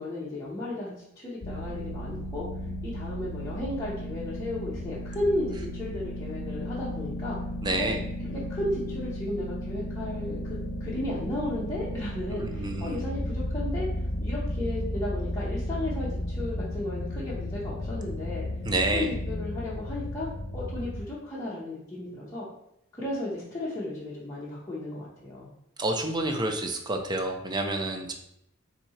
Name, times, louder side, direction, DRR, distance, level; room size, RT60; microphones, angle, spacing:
voice 1, 0.0-2.5 2.8-7.4 7.8-13.9 14.2-18.5 18.9-20.3 20.5-22.5 22.9-25.5, left 1 dB, 15° left, -9 dB, 0.9 m, -34 dB
sound 1, 1.4-21.0, left 1 dB, 55° left, 0.7 m, -34 dB
voice 2, 7.6-8.0 12.3-13.0 18.7-19.1 25.8-28.1, right 2 dB, 20° right, 4 dB, 0.6 m, -29 dB
4.3 x 2.7 x 4.2 m, 0.77 s
head